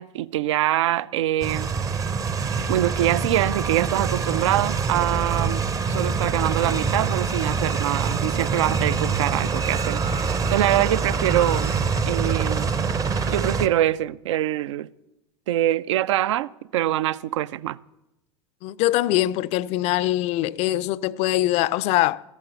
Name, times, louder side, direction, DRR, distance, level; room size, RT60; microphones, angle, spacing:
voice 1, 0.0-1.7 2.7-5.6 5.9-11.7 12.1-12.7 13.3-14.9 15.5-17.8, right 13 dB, 65° right, 0.4 m, -24 dB
sound 1, 1.4-13.7, right 5 dB, 20° right, 0.6 m, -25 dB
voice 2, 18.6-22.2, left 15 dB, 40° left, 0.4 m, -23 dB
13.5 x 8.4 x 6.8 m
figure-of-eight pair, 80°, 17 cm